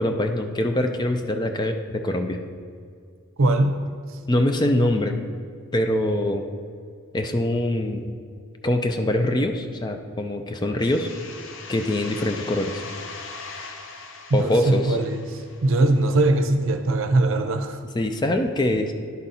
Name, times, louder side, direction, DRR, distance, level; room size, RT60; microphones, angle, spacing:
voice 1, 0.0-2.4 4.3-5.2 5.7-6.5 7.1-8.2 8.6-11.1 11.7-12.8 14.3-15.0 17.9-18.9, left 1 dB, 20° left, 5 dB, 0.4 m, -23 dB
voice 2, 3.4-3.7 14.4-17.8, right 2 dB, 70° right, 7 dB, 0.6 m, -21 dB
sound 1, 10.8-16.3, left 4 dB, 60° left, 0.6 m, -40 dB
11.0 x 4.0 x 4.1 m, 2.2 s
head